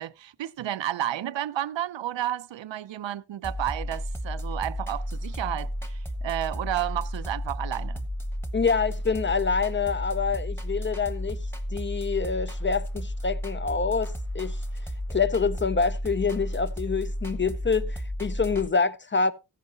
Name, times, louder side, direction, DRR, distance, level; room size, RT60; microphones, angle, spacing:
voice 1, 0.0-8.1, right 12 dB, 90° right, 0.6 m, -31 dB
sound 1, 3.4-18.7, equal, 5° left, 1.1 m, -33 dB
voice 2, 8.5-11.4 11.7-14.6 15.1-19.3, left 5 dB, 30° left, 0.5 m, -26 dB
14.0 x 11.0 x 2.8 m
wide cardioid pair, 140°, 43 cm